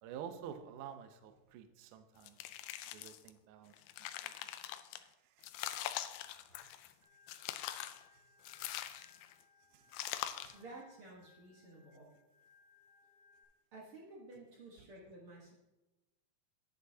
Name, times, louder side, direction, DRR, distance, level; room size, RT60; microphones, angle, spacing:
voice 1, 0.0-2.4 2.9-3.7 4.2-4.3 5.0-5.5 6.5-6.7 8.1-8.2 8.6-8.9 9.7-9.9 10.4-10.6, right 8 dB, 80° right, 8 dB, 1.8 m, -50 dB
sound 1, 2.2-3.3 3.7-5.0 5.4-6.9 7.3-8.0 8.4-9.3 9.9-10.6, left 13 dB, 85° left, 2.6 m, -43 dB
Organ, 7.0-13.4, left 6 dB, 15° right, 2.6 m, -67 dB
voice 2, 10.5-12.1 13.7-15.5, right 2 dB, 65° right, -3 dB, 1.3 m, -53 dB
10.5 x 10.0 x 2.8 m, 1.0 s
omnidirectional pair, 4.5 m